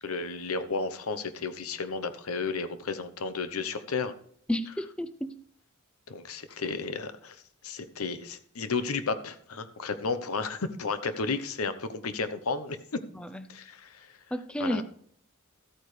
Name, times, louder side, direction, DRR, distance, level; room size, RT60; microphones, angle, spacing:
voice 1, 0.0-4.1 6.1-7.4 7.6-13.0 13.5-14.1 14.6-14.8, left 4 dB, 85° left, 0.9 m, -33 dB
voice 2, 4.5-5.4 13.1-13.5 14.3-14.8, equal, 5° left, 0.5 m, -32 dB
14.0 x 8.8 x 3.3 m
head